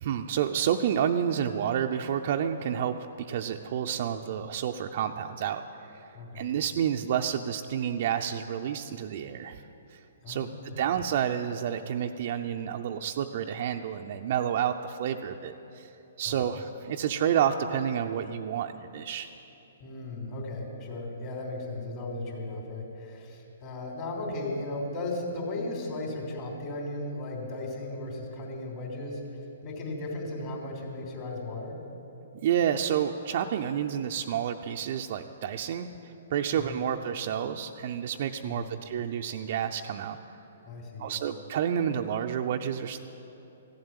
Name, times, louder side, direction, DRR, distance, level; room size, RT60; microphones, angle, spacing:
voice 1, 0.0-5.6 5.9-6.1 6.3-9.6 9.9-10.0 10.3-15.9 16.2-19.3 32.4-40.2 41.0-43.0, right 9 dB, 50° right, 4 dB, 0.5 m, -29 dB
voice 2, 6.1-6.5 10.2-10.8 16.2-16.4 19.8-29.2 29.6-31.8 36.5-36.8 38.4-38.7 40.7-41.2, left 2 dB, 35° left, -2 dB, 3.3 m, -36 dB
15.0 x 7.7 x 9.0 m, 3.0 s
hypercardioid pair, 130°, 0 cm